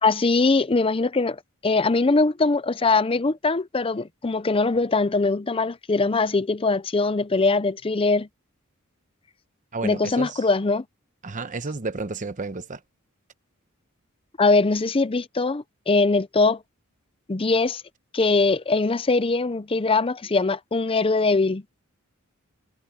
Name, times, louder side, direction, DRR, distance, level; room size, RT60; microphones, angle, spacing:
voice 1, 0.0-8.3 9.8-10.8 14.4-16.6 17.3-17.8 18.1-21.6, left 3 dB, 25° left, 0.6 m, -22 dB
voice 2, 9.7-10.4 11.2-12.8, right 3 dB, 35° right, 1.0 m, -31 dB
head